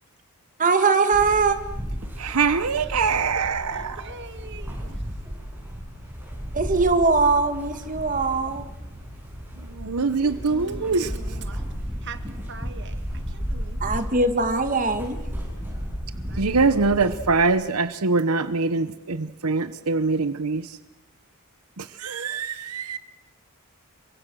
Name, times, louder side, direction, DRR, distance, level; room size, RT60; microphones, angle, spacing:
voice 1, 0.6-1.6 6.5-8.6 13.8-15.2, right 4 dB, 35° right, 2.0 m, -21 dB
sound 1, 1.1-17.4, equal, 10° right, 7.2 m, -34 dB
voice 2, 2.2-4.0 9.7-11.1 16.4-20.8 21.8-23.0, right 4 dB, 85° right, 1.0 m, -23 dB
voice 3, 2.9-5.0 10.5-11.7 12.0-13.8 16.1-16.6, right 3 dB, 55° right, 1.9 m, -42 dB
28.5 x 24.0 x 6.3 m
head